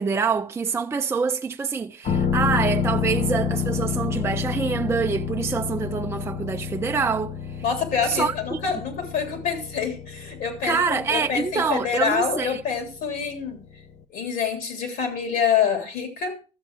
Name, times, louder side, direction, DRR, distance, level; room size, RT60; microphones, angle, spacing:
voice 1, 0.0-7.3 8.1-8.6 10.6-12.6, right 5 dB, 15° right, 0.5 m, -25 dB
sound 1, 2.0-13.6 13.9-14.0, left 6 dB, 50° left, 1.0 m, -29 dB
voice 2, 7.6-13.6 14.1-16.4, left 6 dB, 70° left, 3.4 m, -26 dB
13.5 x 7.1 x 4.7 m
cardioid pair, 105°, 16 cm